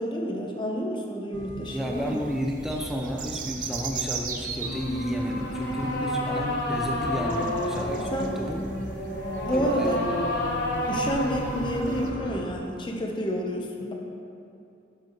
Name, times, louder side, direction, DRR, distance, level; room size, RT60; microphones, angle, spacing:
voice 1, 0.0-2.2 6.2-6.3 8.1-8.3 9.4-10.0 10.9-13.9, equal, 25° left, 0 dB, 0.8 m, -29 dB
sound 1, 1.3-12.2, equal, 80° right, 1.3 m, -41 dB
sound 2, 1.6-12.1, right 6 dB, 45° right, 0.6 m, -40 dB
voice 2, 1.7-8.6 9.6-10.0, equal, ahead, 0 dB, 0.7 m, -32 dB
sound 3, 4.6-12.6, left 1 dB, 65° left, 1.2 m, -30 dB
10.5 x 7.8 x 3.1 m, 2.7 s
head